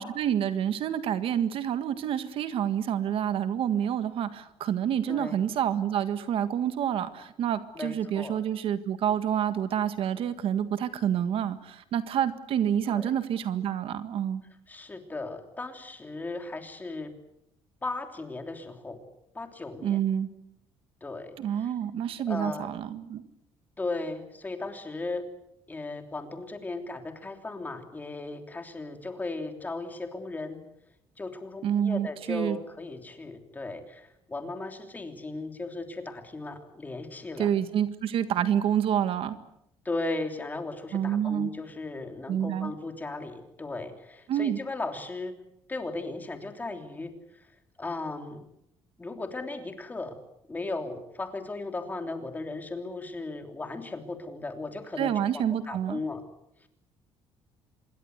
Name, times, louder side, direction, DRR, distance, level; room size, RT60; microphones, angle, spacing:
voice 1, 0.0-14.4 19.8-20.3 21.4-23.2 31.6-32.6 37.4-39.4 40.9-41.5 42.3-42.7 44.3-44.6 55.0-56.0, right 9 dB, 60° right, 11 dB, 1.7 m, -28 dB
voice 2, 5.1-5.4 7.7-8.4 12.9-13.1 14.7-17.1 17.8-19.0 19.3-20.0 21.0-21.7 22.3-22.7 23.8-25.2 25.7-30.6 31.2-37.5 39.8-45.3 45.7-47.5 47.8-48.4 49.0-50.2 50.5-56.2, left 2 dB, 15° left, 6 dB, 3.3 m, -36 dB
26.5 x 22.0 x 8.1 m, 0.80 s
cardioid pair, 145°, 11 cm